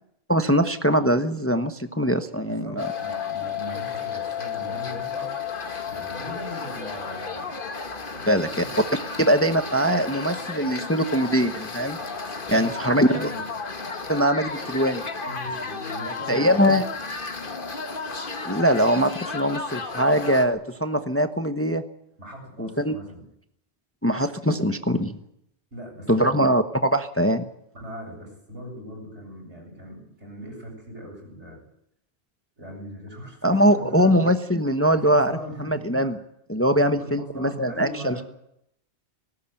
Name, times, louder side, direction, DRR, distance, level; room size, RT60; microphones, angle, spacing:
voice 1, 0.3-2.9 8.3-8.6 9.2-12.0 12.5-13.3 14.1-15.0 16.3-16.8 18.4-21.8 22.6-22.9 24.0-25.1 26.1-27.4 33.4-35.3 35.6-36.2 36.5-38.2, equal, 15° left, 8 dB, 1.0 m, -22 dB
voice 2, 2.4-5.3 5.9-7.5 8.1-8.7 12.5-13.4 15.2-16.7 22.2-23.2 25.7-26.4 27.7-31.6 32.6-34.3 35.0-36.2 36.7-38.2, equal, 80° right, 0 dB, 8.3 m, -40 dB
sound 1, 2.8-20.5, left 5 dB, 50° left, 1.7 m, -33 dB
19.0 x 18.0 x 9.0 m, 0.77 s
omnidirectional pair, 1.2 m